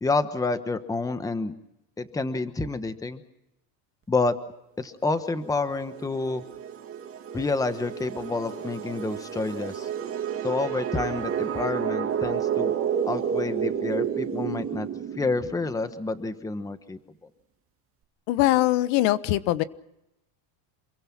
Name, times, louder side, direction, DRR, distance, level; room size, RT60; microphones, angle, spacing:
voice 1, 0.0-1.5 2.0-3.2 4.1-4.3 4.8-6.4 7.3-9.9 10.4-12.7 13.1-14.9 15.2-17.0, left 3 dB, 5° left, 10 dB, 1.1 m, -28 dB
sound 1, 5.4-15.9, right 8 dB, 25° right, 2.5 m, -31 dB
voice 2, 18.3-19.6, left 16 dB, 65° left, 14 dB, 1.3 m, -22 dB
28.0 x 22.5 x 6.0 m, 0.85 s
cardioid pair, 150°, 50 cm